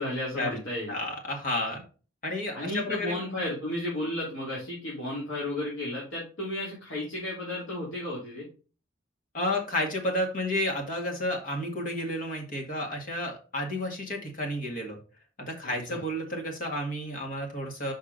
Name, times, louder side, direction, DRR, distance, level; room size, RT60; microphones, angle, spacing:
voice 1, 0.0-0.9 2.5-8.4 15.6-16.0, left 1 dB, 75° left, -7 dB, 2.9 m, -33 dB
voice 2, 0.9-1.8 2.2-3.2 9.3-15.0 15.4-17.9, left 1 dB, 45° left, 1 dB, 1.9 m, -31 dB
6.5 x 5.3 x 3.9 m, 0.36 s
head